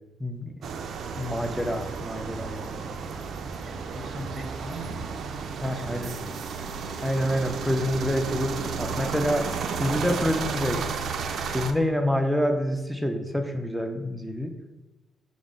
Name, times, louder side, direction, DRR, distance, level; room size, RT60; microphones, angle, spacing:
voice 1, 0.2-0.6 1.1-2.7 5.6-6.2 7.0-8.5 8.8-9.4 9.8-10.8 11.5-14.5, equal, ahead, 4 dB, 0.4 m, -27 dB
sound 1, 0.6-11.7, right 5 dB, 65° right, 0.3 m, -33 dB
voice 2, 3.6-6.4, right 1 dB, 30° right, 2 dB, 0.8 m, -41 dB
4.8 x 2.0 x 3.7 m, 1.1 s
cardioid pair, 90°, 0 cm